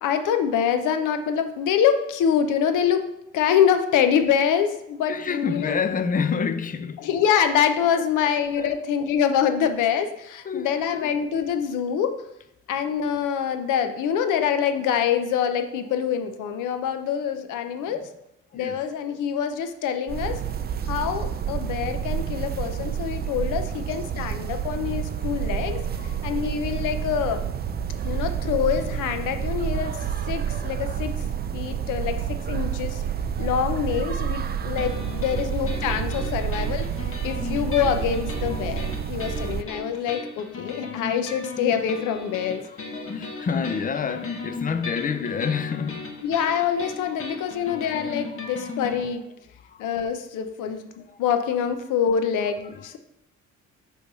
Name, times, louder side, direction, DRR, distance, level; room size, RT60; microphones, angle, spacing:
voice 1, 0.0-3.1 3.3-5.8 7.0-12.2 12.7-18.1 18.5-20.4 20.9-25.8 26.2-27.4 28.0-30.0 30.3-31.2 31.5-33.0 33.4-36.9 37.2-42.6 46.2-49.2 49.8-50.9 51.2-53.0, left 8 dB, 85° left, 0.7 m, -25 dB
voice 2, 5.1-7.1 8.0-8.3 8.6-8.9 10.4-11.1 17.9-18.1 18.5-18.8 24.4-24.5 25.9-26.3 31.4-31.5 32.3-32.4 38.5-38.8 39.1-39.3 42.7-46.2 47.1-47.2 48.1-48.7 49.6-49.9 51.0-51.2 52.0-52.1 52.4-53.0, left 6 dB, 30° left, 0.5 m, -30 dB
sound 1, 20.1-39.6, right 8 dB, 35° right, 0.4 m, -29 dB
sound 2, 34.8-49.0, left 4 dB, 45° left, 1.1 m, -37 dB
6.7 x 3.2 x 5.4 m
cardioid pair, 90°, 30 cm